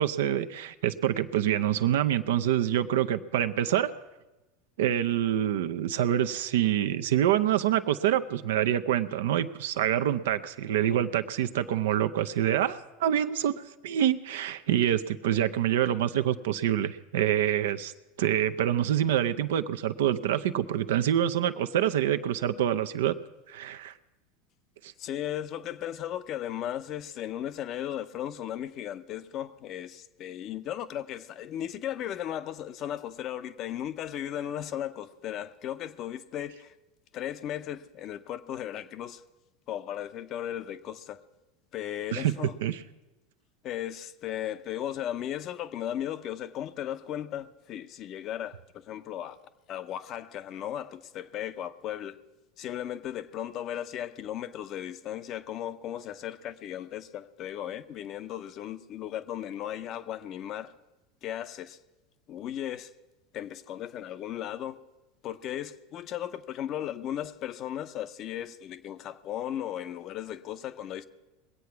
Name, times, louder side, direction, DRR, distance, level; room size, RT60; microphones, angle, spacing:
voice 1, 0.0-3.9 4.8-17.9 18.2-23.1 23.5-23.9 24.8-24.9 42.1-42.3 42.6-42.8, right 11 dB, 70° right, 0.6 m, -26 dB
voice 2, 25.0-36.7 37.1-39.2 39.7-41.2 41.7-42.5 43.6-49.4 49.7-52.2 52.6-60.7 61.2-61.8 62.3-62.9 63.3-64.8 65.2-71.0, left 11 dB, 45° left, 0.7 m, -36 dB
21.5 x 8.4 x 5.8 m
hypercardioid pair, 80°, 0 cm